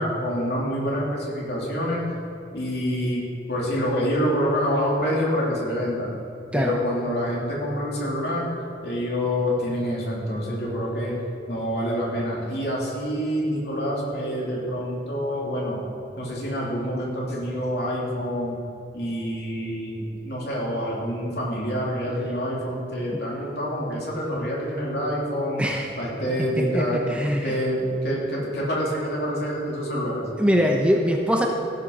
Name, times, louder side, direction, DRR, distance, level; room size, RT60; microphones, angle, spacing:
voice 1, 0.0-2.0 2.5-3.2 3.5-6.1 6.5-8.5 8.8-11.1 11.5-15.8 16.2-18.6 18.9-25.6 26.0-27.0 27.4-30.3, equal, 65° left, -4 dB, 3.2 m, -27 dB
voice 2, 25.6-25.9 26.4-27.6 30.4-31.5, equal, 5° right, 1 dB, 0.8 m, -23 dB
16.5 x 7.6 x 5.5 m, 2.9 s
head